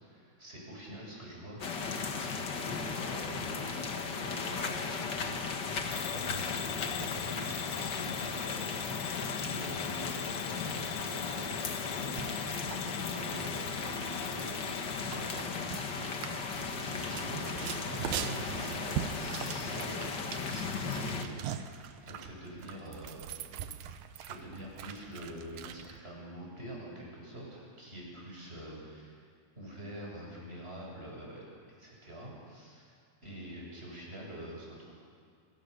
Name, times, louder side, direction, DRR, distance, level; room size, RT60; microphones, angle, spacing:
voice 1, 0.1-1.6 2.1-8.6 9.3-12.4 12.7-15.5 16.5-23.4 24.2-29.1 29.5-31.4 31.8-32.8 33.2-34.9, right 1 dB, 15° right, -3 dB, 7.5 m, -45 dB
sound 1, 1.6-21.2, left 5 dB, 50° left, 1.4 m, -36 dB
Bell / Alarm, 5.9-15.4, left 13 dB, 75° left, 2.1 m, -44 dB
sound 2, 12.0-26.0, right 10 dB, 80° right, 2.7 m, -42 dB
27.5 x 25.0 x 6.9 m, 2.2 s
omnidirectional pair, 4.1 m